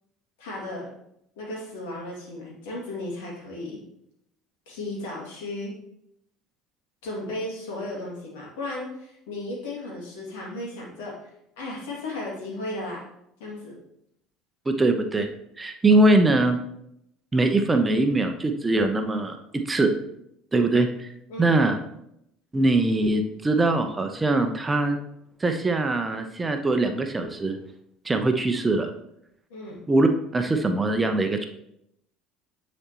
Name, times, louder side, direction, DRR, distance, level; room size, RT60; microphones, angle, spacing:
voice 1, 0.4-0.9 1.4-3.8 4.7-5.8 7.0-11.1 11.6-13.0 13.4-13.8 21.3-21.6 29.5-29.9, left 2 dB, 75° left, -3 dB, 2.3 m, -35 dB
voice 2, 14.7-15.3 15.6-16.6 17.3-19.4 19.7-19.9 20.5-21.1 21.4-21.8 22.5-25.0 25.4-27.6 28.0-28.9 29.9-31.5, right 2 dB, 20° right, 6 dB, 0.7 m, -22 dB
9.8 x 4.2 x 3.0 m, 0.77 s
hypercardioid pair, 65°, 0 cm